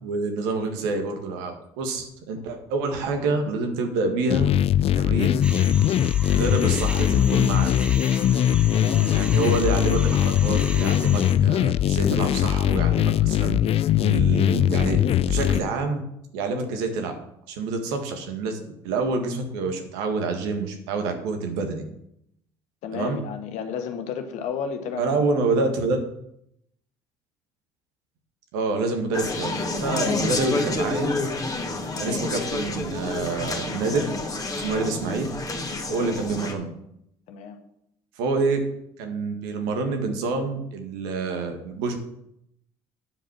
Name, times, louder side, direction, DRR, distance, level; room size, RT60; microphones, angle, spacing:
voice 1, 0.0-4.5 5.0-5.4 6.2-7.7 9.1-13.6 14.0-15.0 15.3-16.0 16.3-17.1 17.5-21.8 22.9-23.2 25.0-26.0 28.5-31.1 32.0-34.1 34.6-35.3 35.9-36.7 38.2-38.6 39.0-42.0, right 3 dB, 80° right, 4 dB, 1.8 m, -27 dB
sound 1, 4.3-15.6, left 11 dB, 50° left, 0.4 m, -21 dB
sound 2, 5.4-11.3, right 1 dB, 10° right, 1.4 m, -37 dB
voice 2, 8.7-9.1 22.8-25.2 36.0-36.2 37.3-37.6, left 6 dB, 70° left, 6 dB, 1.5 m, -32 dB
Conversation, 29.1-36.5, left 2 dB, 25° left, 2.1 m, -29 dB
9.4 x 5.2 x 7.2 m, 0.76 s
hypercardioid pair, 65°, 13 cm